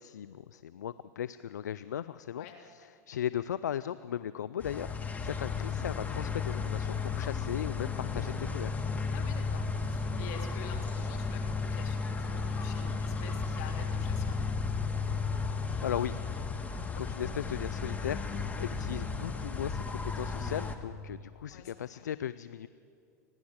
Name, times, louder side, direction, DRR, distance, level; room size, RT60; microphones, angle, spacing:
voice 1, 0.0-8.7 15.8-16.2 17.0-22.7, left 10 dB, 85° left, 14 dB, 0.4 m, -37 dB
sound 1, 4.6-20.8, left 4 dB, 15° left, 1.7 m, -34 dB
voice 2, 9.1-14.7 21.5-22.1, left 7 dB, 65° left, 2 dB, 3.1 m, -48 dB
28.5 x 10.5 x 8.8 m, 2.4 s
hypercardioid pair, 95°, 9 cm